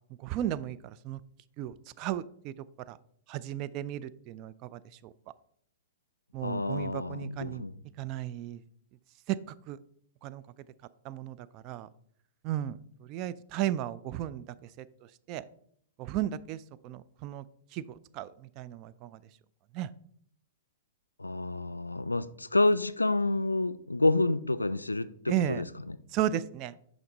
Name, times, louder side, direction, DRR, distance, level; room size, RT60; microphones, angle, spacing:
voice 1, 0.2-1.2 1.6-2.5 2.9-3.0 3.3-5.1 6.3-7.6 8.0-8.6 9.3-9.8 10.2-10.4 11.0-11.9 12.4-15.4 16.0-17.5 17.7-19.2 19.7-19.9 25.3-25.6 26.1-26.8, right 12 dB, 35° right, 0.3 m, -35 dB
voice 2, 6.4-7.7 21.2-26.0, left 2 dB, 85° left, 0.3 m, -29 dB
5.8 x 5.4 x 3.8 m
figure-of-eight pair, 105°, 0 cm